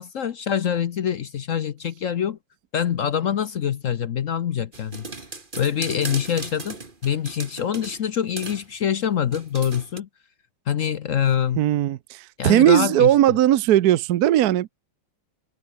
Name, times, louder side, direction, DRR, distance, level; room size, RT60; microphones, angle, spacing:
voice 1, 0.0-2.4 2.7-5.1 5.6-10.1 10.7-11.6 12.4-13.1, left 9 dB, 55° left, 0.9 m, -25 dB
sound 1, 4.7-8.0 8.4-8.7 9.3-10.0, right 3 dB, 25° right, 2.5 m, -37 dB
voice 2, 11.6-14.7, right 12 dB, 65° right, 1.1 m, -18 dB
omnidirectional pair, 2.0 m